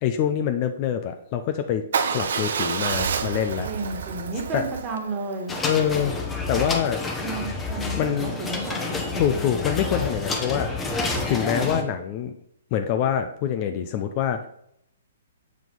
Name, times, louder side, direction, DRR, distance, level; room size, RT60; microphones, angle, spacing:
voice 1, 0.0-1.8 2.1-3.7 4.5-4.6 5.6-6.2 6.5-7.0 8.0-8.4 9.2-10.7 11.3-12.4 12.7-14.5, left 9 dB, 35° left, 7 dB, 0.5 m, -25 dB
Motorcycle / Engine starting / Idling, 1.9-6.0, right 6 dB, 60° right, 0.6 m, -29 dB
voice 2, 3.7-5.6 7.2-9.2, right 3 dB, 25° right, 0 dB, 1.9 m, -32 dB
sound 1, 5.5-11.8, left 3 dB, 15° left, 0.9 m, -29 dB
7.1 x 4.5 x 3.9 m, 0.71 s
figure-of-eight pair, 120°, 0 cm